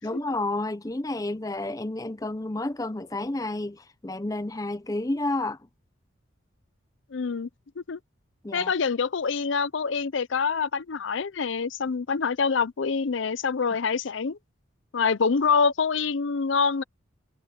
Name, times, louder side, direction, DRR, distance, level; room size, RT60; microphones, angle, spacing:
voice 1, 0.0-5.7 8.4-8.7, left 2 dB, 15° left, 0.6 m, -30 dB
voice 2, 7.1-7.5 7.8-8.0 8.5-14.4 14.9-16.8, left 5 dB, 70° left, 0.6 m, -26 dB
head